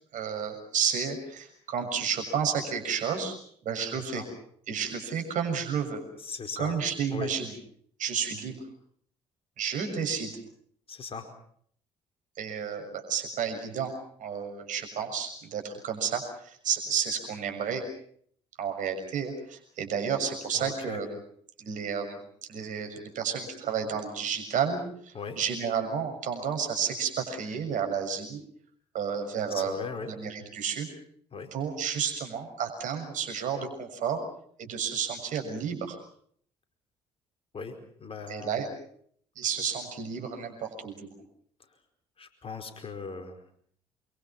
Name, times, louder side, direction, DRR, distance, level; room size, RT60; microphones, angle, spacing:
voice 1, 0.1-3.3 3.6-4.2 4.7-6.0 6.6-7.5 8.0-8.5 9.6-10.3 12.4-13.9 14.2-17.8 18.6-21.1 21.6-22.2 22.5-24.8 25.0-28.4 28.9-29.7 30.1-30.9 31.5-34.2 34.6-36.0 38.3-38.7 39.4-41.1, right 7 dB, 60° right, 6 dB, 6.5 m, -31 dB
voice 2, 3.7-4.3 6.2-6.8 7.1-7.3 10.9-11.3 20.5-21.0 25.1-25.4 29.5-30.2 31.3-31.5 37.5-37.7 38.0-38.6 41.7-41.8 42.2-43.4, left 5 dB, 40° left, 6 dB, 4.8 m, -39 dB
28.5 x 24.0 x 6.0 m, 0.62 s
hypercardioid pair, 55°, 15 cm